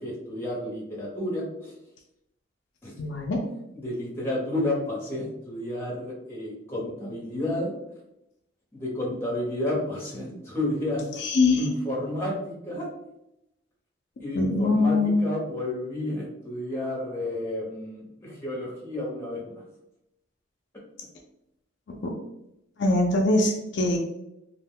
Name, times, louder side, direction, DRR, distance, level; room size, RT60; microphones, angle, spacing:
voice 1, 0.0-1.7 2.8-2.9 3.8-7.7 8.7-11.1 11.5-12.9 14.2-19.5, left 1 dB, 10° left, -4 dB, 0.7 m, -31 dB
voice 2, 3.0-3.4 11.2-11.7 14.3-15.2 21.9-22.1 22.8-24.0, left 2 dB, 60° left, 1 dB, 0.4 m, -23 dB
2.4 x 2.1 x 3.5 m, 0.84 s
head